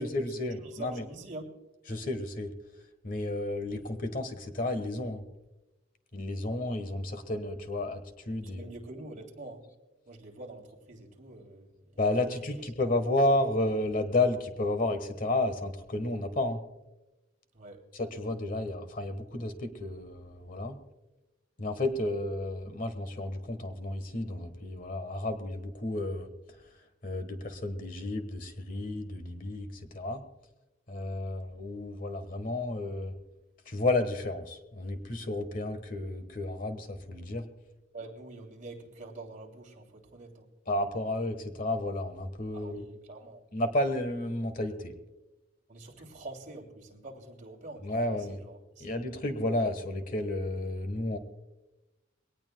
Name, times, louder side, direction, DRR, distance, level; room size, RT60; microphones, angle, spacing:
voice 1, 0.0-1.0 1.9-2.5 3.0-5.2 6.1-8.7 12.0-16.6 17.9-20.8 21.6-26.7 27.0-30.2 30.9-33.1 33.6-37.5 40.7-42.8 43.5-44.9 47.8-48.4 48.8-51.2, left 2 dB, 45° left, 10 dB, 1.3 m, -32 dB
voice 2, 0.6-1.5 8.4-9.7 10.0-12.1 12.7-12.8 17.5-17.8 37.9-40.5 42.5-43.4 45.7-48.9 49.1-49.2, right 2 dB, 45° right, 1 dB, 2.8 m, -46 dB
22.5 x 18.5 x 2.2 m, 1.0 s
head